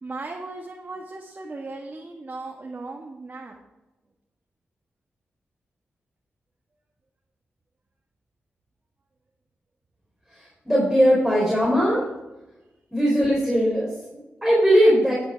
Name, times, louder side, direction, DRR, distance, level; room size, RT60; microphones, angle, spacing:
voice 1, 0.0-3.5, right 3 dB, 45° right, 0 dB, 1.6 m, -37 dB
voice 2, 10.3-12.0 12.9-15.3, equal, ahead, -5 dB, 4.2 m, -20 dB
11.0 x 8.2 x 4.7 m, 1.0 s
cardioid pair, 55°, 4 cm